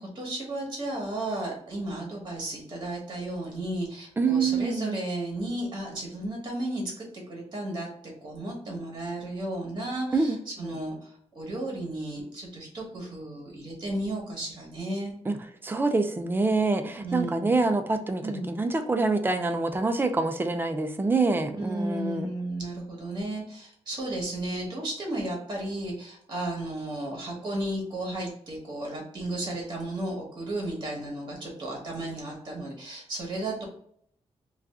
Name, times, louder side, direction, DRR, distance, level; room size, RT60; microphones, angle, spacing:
voice 1, 0.0-15.1 17.0-17.5 18.2-18.5 21.6-33.7, right 1 dB, 40° right, -1 dB, 1.0 m, -34 dB
voice 2, 4.2-5.0 10.1-10.8 15.3-15.4 15.6-22.3, right 3 dB, 20° right, 7 dB, 0.4 m, -26 dB
2.6 x 2.3 x 3.4 m, 0.66 s
wide cardioid pair, 140°, 11 cm